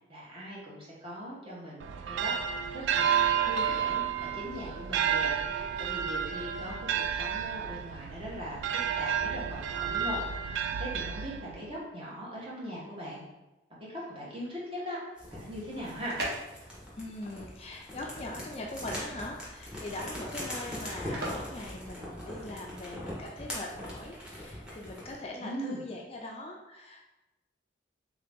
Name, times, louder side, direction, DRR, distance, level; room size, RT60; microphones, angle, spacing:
voice 1, 0.1-2.3 2.7-13.3 13.8-15.0 15.3-16.2 25.4-25.8, equal, 30° right, -6 dB, 1.2 m, -40 dB
sound 1, 1.8-11.7, right 7 dB, 80° right, 0.3 m, -31 dB
sound 2, 15.2-25.2, equal, 5° right, 0.9 m, -42 dB
sound 3, 15.7-22.6, right 1 dB, 60° right, 1.0 m, -42 dB
voice 2, 17.0-27.0, left 2 dB, 30° left, 0 dB, 0.4 m, -41 dB
3.7 x 2.9 x 3.5 m, 1.0 s
head